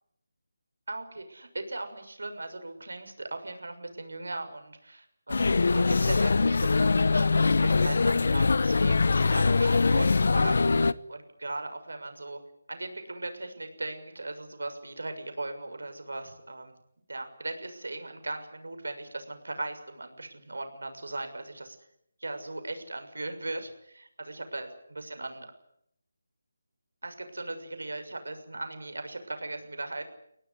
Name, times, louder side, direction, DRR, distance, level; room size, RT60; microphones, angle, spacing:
voice 1, 0.9-12.4 12.7-16.7 17.1-21.8 22.2-25.5 27.0-30.0, right 2 dB, 90° right, 7 dB, 6.5 m, -38 dB
sound 1, 5.3-10.9, left 4 dB, 50° left, 0.9 m, -23 dB
24.0 x 18.0 x 10.0 m, 0.74 s
figure-of-eight pair, 175°, 0 cm